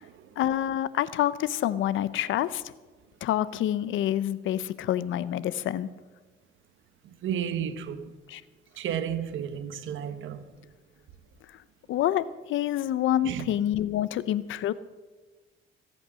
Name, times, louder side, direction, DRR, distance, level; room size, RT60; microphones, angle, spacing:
voice 1, 0.4-2.6 3.2-5.9 8.3-8.4 11.9-14.7, left 12 dB, 80° left, 0.6 m, -27 dB
voice 2, 7.2-8.1 8.8-10.5 13.2-13.5, right 9 dB, 80° right, 1.2 m, -32 dB
22.0 x 8.5 x 6.3 m
cardioid pair, 90°, 20 cm